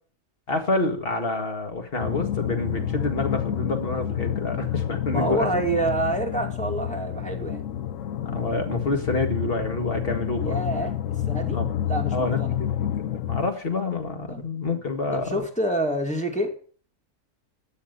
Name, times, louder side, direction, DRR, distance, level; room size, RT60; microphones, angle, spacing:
voice 1, 0.5-5.5 8.2-10.6 11.5-11.7 12.1-12.9 13.3-15.4, left 2 dB, 45° left, 6 dB, 2.1 m, -28 dB
sound 1, 2.0-13.5, left 10 dB, 70° left, 1.1 m, -29 dB
voice 2, 5.1-7.6 10.3-10.9 11.3-11.6 11.8-12.6 14.3-14.4 15.1-16.5, right 1 dB, 5° left, 1 dB, 2.4 m, -27 dB
13.0 x 8.5 x 5.5 m, 0.43 s
omnidirectional pair, 1.4 m